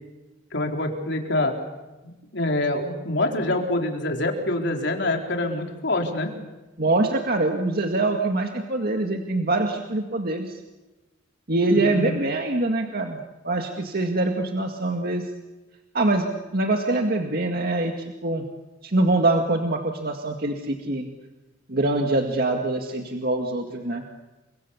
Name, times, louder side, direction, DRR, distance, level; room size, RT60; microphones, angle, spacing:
voice 1, 0.5-1.6 2.0-6.3 11.7-12.2, left 2 dB, 65° left, 2 dB, 4.2 m, -26 dB
voice 2, 6.8-10.5 11.5-13.2 13.4-15.3 15.9-16.3 16.5-18.4 18.8-21.1 21.7-24.0, right 2 dB, 55° right, 3 dB, 2.0 m, -24 dB
30.0 x 25.0 x 7.2 m, 1.1 s
head